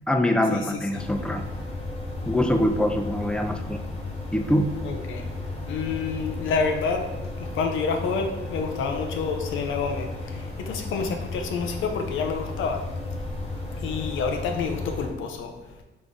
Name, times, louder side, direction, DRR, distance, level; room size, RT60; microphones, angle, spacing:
voice 1, 0.1-1.5 2.3-3.8 4.3-4.7, left 1 dB, 5° left, 5 dB, 0.5 m, -24 dB
sound 1, 0.9-15.1, left 2 dB, 30° left, 1.2 m, -34 dB
voice 2, 4.8-5.3 5.7-7.1 7.4-12.8 13.8-15.5, left 5 dB, 80° left, 4 dB, 0.6 m, -28 dB
3.7 x 3.4 x 3.8 m, 1.0 s
cardioid pair, 90°, 20 cm